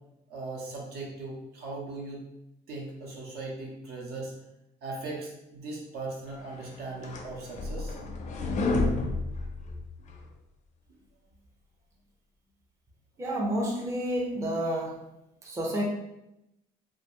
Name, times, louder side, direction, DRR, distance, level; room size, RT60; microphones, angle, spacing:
voice 1, 0.3-2.2 2.7-4.3 4.8-8.0, right 2 dB, 70° right, -2 dB, 0.8 m, -38 dB
sound 1, 6.6-10.2, left 2 dB, 45° left, 0.4 m, -30 dB
voice 2, 13.2-15.0 15.4-15.8, right 1 dB, 15° right, -2 dB, 0.5 m, -29 dB
2.4 x 2.1 x 2.9 m, 0.87 s
cardioid pair, 110°, 17 cm